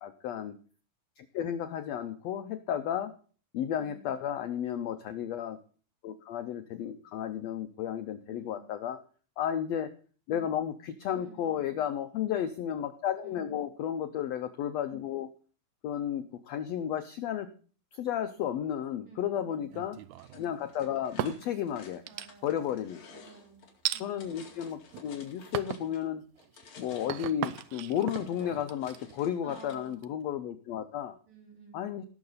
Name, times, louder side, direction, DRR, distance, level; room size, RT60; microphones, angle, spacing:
voice 1, 0.0-0.6 1.2-3.1 3.5-5.6 6.0-9.0 9.4-9.9 10.3-15.3 15.8-17.5 17.9-20.0 20.3-22.0 22.4-23.0 24.0-26.2 26.8-31.1 31.7-32.0, left 9 dB, 80° left, 9 dB, 1.5 m, -33 dB
voice 2, 3.8-4.1 8.3-8.7 11.1-11.9 13.2-13.6 19.1-19.8 22.0-22.8 23.1-23.7 23.9-24.3 29.4-30.0 31.3-31.9, right 5 dB, 60° right, 0 dB, 4.4 m, -53 dB
sound 1, 19.7-20.4 21.0-21.6 22.1-22.7 23.9-24.0 24.7-25.1 25.5-25.9 26.4-30.1, right 14 dB, 75° right, 1.8 m, -37 dB
sound 2, 20.1-26.1 26.4-29.9, left 5 dB, 55° left, 3.5 m, -54 dB
18.0 x 7.0 x 4.0 m, 0.40 s
omnidirectional pair, 3.8 m